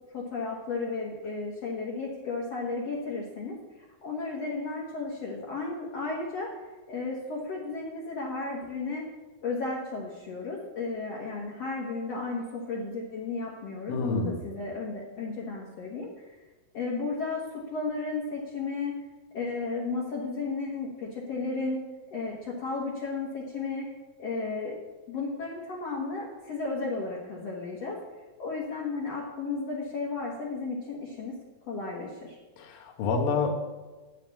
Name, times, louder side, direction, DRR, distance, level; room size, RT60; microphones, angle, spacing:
voice 1, 0.1-6.5 6.9-9.0 9.4-16.4 16.7-17.4 17.7-19.0 19.3-21.8 22.1-23.9 24.2-24.8 25.1-28.0 28.4-31.4 31.6-32.4, left 3 dB, 55° left, -3 dB, 2.2 m, -34 dB
voice 2, 13.9-14.4 32.6-33.5, left 4 dB, 80° left, 2 dB, 3.2 m, -28 dB
9.2 x 6.8 x 8.2 m, 1.2 s
omnidirectional pair, 4.2 m